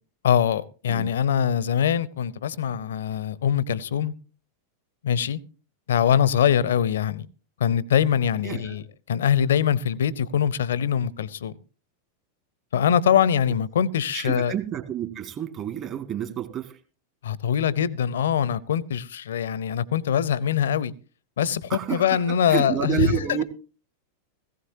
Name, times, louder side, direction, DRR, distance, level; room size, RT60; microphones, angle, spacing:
voice 1, 0.2-4.1 5.0-5.4 5.9-7.3 7.6-11.5 12.7-14.5 17.2-20.9 21.4-23.4, left 8 dB, 65° left, 0.7 m, -23 dB
voice 2, 8.4-8.8 14.1-16.8 21.7-23.4, right 10 dB, 35° right, 2.0 m, -29 dB
18.0 x 15.5 x 2.8 m
figure-of-eight pair, 90°, 0 cm